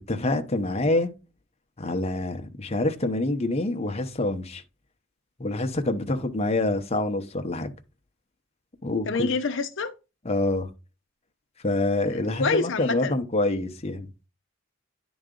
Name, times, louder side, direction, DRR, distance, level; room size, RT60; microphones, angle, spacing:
voice 1, 0.1-1.1 1.8-4.6 5.4-7.7 8.8-9.3 10.2-10.7 11.6-14.1, left 2 dB, 30° left, 0.8 m, -26 dB
voice 2, 9.1-9.9 12.1-13.1, left 4 dB, 70° left, 0.7 m, -27 dB
10.0 x 4.0 x 3.8 m
head